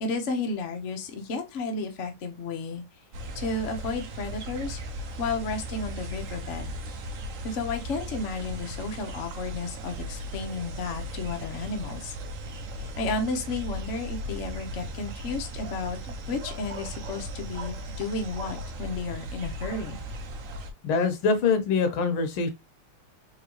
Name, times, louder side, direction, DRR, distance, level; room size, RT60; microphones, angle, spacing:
voice 1, 0.0-2.8 3.3-4.8 5.2-6.7 7.4-12.1 12.8-20.0, left 3 dB, 55° left, 0.8 m, -32 dB
sound 1, 3.1-20.7, equal, 70° right, 0.7 m, -37 dB
voice 2, 20.8-22.5, left 5 dB, 80° left, 1.7 m, -24 dB
3.8 x 3.1 x 3.0 m
omnidirectional pair, 2.3 m